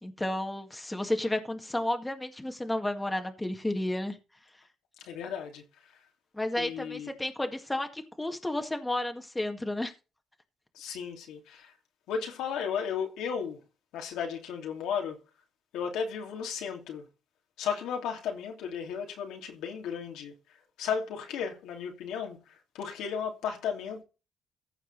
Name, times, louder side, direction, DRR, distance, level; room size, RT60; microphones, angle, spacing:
voice 1, 0.0-4.2 6.3-9.9, left 1 dB, 10° left, 1.9 m, -32 dB
voice 2, 5.0-5.6 6.6-7.1 10.7-11.7 12.1-13.6 13.9-15.2 15.7-17.1 17.6-20.3 20.8-24.0, left 7 dB, 90° left, 2.9 m, -34 dB
15.0 x 5.5 x 4.1 m
cardioid pair, 90°, 0 cm